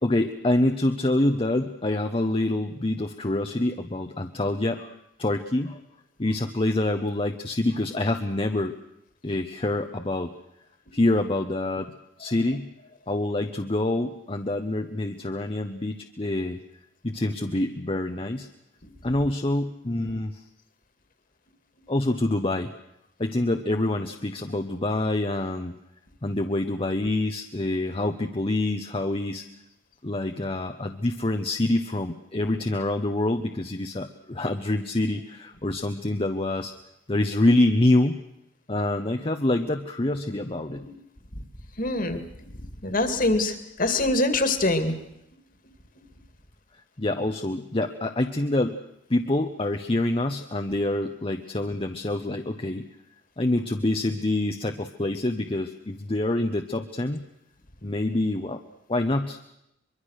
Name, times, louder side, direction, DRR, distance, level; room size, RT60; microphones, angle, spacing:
voice 1, 0.0-4.9 5.2-5.8 6.2-8.7 9.2-10.3 10.9-11.9 12.2-12.7 13.1-16.6 17.0-18.5 19.0-20.4 21.9-22.7 23.2-25.7 26.2-29.5 30.0-36.7 37.1-38.2 38.7-40.9 47.0-48.8 49.1-52.9 53.4-57.2 57.8-58.6 58.9-59.4, left 1 dB, 30° left, 5 dB, 0.9 m, -26 dB
voice 2, 41.8-42.2 42.8-44.9, left 2 dB, 45° left, 9 dB, 2.3 m, -24 dB
24.0 x 23.0 x 6.5 m, 0.81 s
head